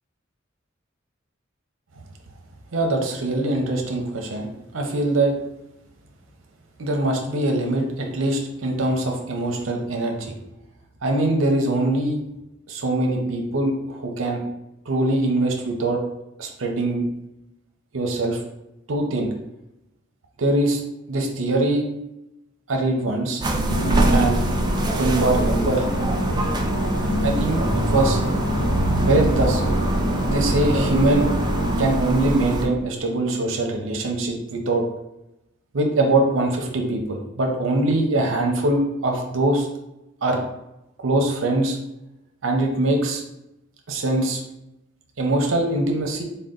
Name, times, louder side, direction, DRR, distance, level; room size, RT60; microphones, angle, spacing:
voice 1, 2.7-5.3 6.8-10.3 11.0-12.2 12.7-14.4 14.9-16.0 16.4-17.1 17.9-18.4 18.9-19.3 20.4-20.8 21.1-21.9 22.7-23.4 24.1-24.4 25.0-25.8 27.2-28.2 29.0-29.6 30.2-31.3 31.8-34.8 35.7-39.7 40.2-40.4 41.0-41.8 42.4-43.2 43.9-44.4 45.2-46.2, right 2 dB, 75° right, 2 dB, 0.6 m, -22 dB
sound 1, 23.4-32.7, right 1 dB, 20° right, 0.4 m, -23 dB
Musical instrument, 23.7-32.2, equal, 60° left, 0.6 m, -27 dB
3.8 x 2.2 x 3.7 m, 0.88 s
head